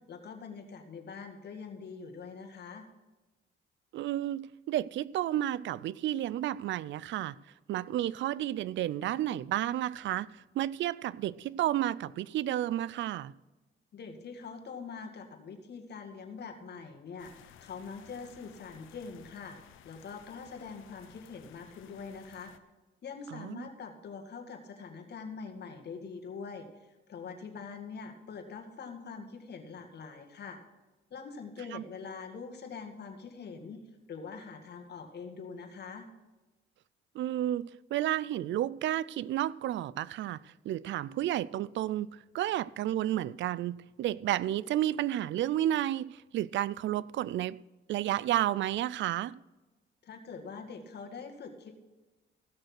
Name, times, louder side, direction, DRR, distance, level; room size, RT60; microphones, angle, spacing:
voice 1, 0.1-2.9 13.9-22.5 23.0-30.6 31.1-33.8 34.1-36.1 50.0-51.7, left 5 dB, 55° left, 2.1 m, -44 dB
voice 2, 3.9-7.4 7.7-13.3 23.3-23.7 31.7-31.8 37.1-47.6 47.9-49.4, right 13 dB, 70° right, 0.4 m, -31 dB
sound 1, 17.2-22.6, left 10 dB, 85° left, 0.9 m, -56 dB
15.5 x 6.5 x 6.1 m
cardioid pair, 90°, 20 cm